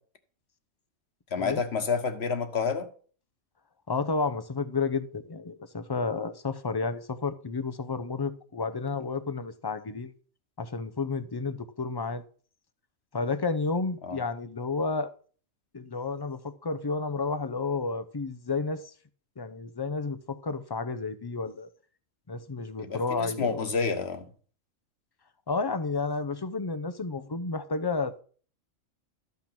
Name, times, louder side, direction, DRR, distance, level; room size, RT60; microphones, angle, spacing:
voice 1, 1.3-2.9 14.0-14.2 22.8-24.3, left 5 dB, 50° left, 1.5 m, -29 dB
voice 2, 3.9-10.1 10.6-12.2 13.1-15.1 15.7-18.9 19.4-21.7 22.3-23.6 25.5-28.2, left 4 dB, 30° left, 0.4 m, -31 dB
13.5 x 5.9 x 6.0 m
omnidirectional pair, 1.4 m